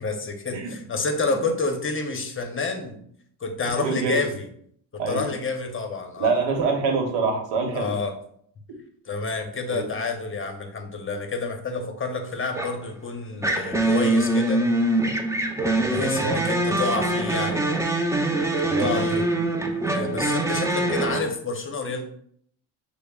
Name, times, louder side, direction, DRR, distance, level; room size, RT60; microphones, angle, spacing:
voice 1, 0.0-3.0 3.4-4.5 5.1-6.4 7.7-8.1 9.1-14.6 15.9-17.6 18.8-19.3 19.9-22.0, left 3 dB, 30° left, 5 dB, 0.8 m, -29 dB
voice 2, 3.8-4.2 5.0-5.3 6.2-7.9 8.7-8.8 9.7-9.9 16.2-16.5 18.6-19.5, right 4 dB, 75° right, 3 dB, 1.0 m, -26 dB
sound 1, 12.5-12.8 13.4-21.2, right 2 dB, 5° right, 0.5 m, -23 dB
6.3 x 2.1 x 2.3 m, 0.65 s
supercardioid pair, 70°, 43 cm